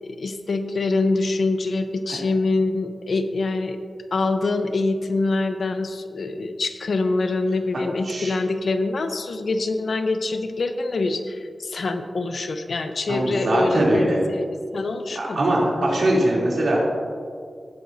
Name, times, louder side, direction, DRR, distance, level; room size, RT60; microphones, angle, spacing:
voice 1, 0.0-3.8 4.1-14.5 14.7-15.4, left 3 dB, 70° left, 8 dB, 0.7 m, -25 dB
voice 2, 13.1-14.2 15.1-16.9, right 1 dB, 85° right, -5 dB, 3.0 m, -21 dB
17.5 x 7.9 x 2.7 m, 2.2 s
wide cardioid pair, 110°, 0 cm